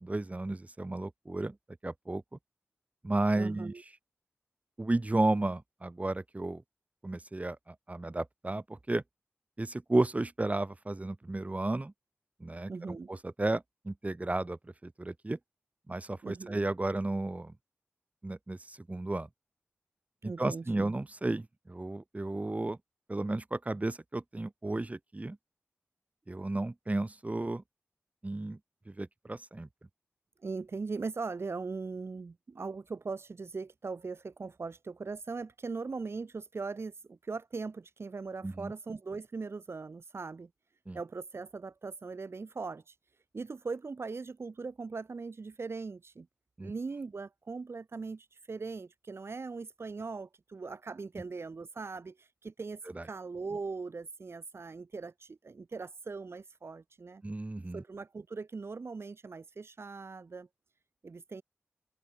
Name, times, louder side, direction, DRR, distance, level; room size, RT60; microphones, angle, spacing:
voice 1, 0.0-1.5 1.8-2.2 3.0-3.7 4.8-6.6 7.0-9.0 9.6-11.9 12.4-15.4 15.9-17.5 18.2-19.3 20.2-22.8 23.1-25.4 26.3-27.6 28.2-28.6 28.9-29.7 38.4-38.7 40.9-41.0 46.6-46.7 52.9-53.1 57.2-57.8, right 2 dB, 30° right, 4.8 m, -33 dB
voice 2, 3.3-3.8 12.7-13.1 16.2-16.6 20.2-21.0 30.4-40.5 40.9-43.0 43.3-46.3 46.6-57.2 57.7-60.5 61.0-61.4, right 4 dB, 70° right, 5.2 m, -40 dB
open air
wide cardioid pair, 60°, 4 cm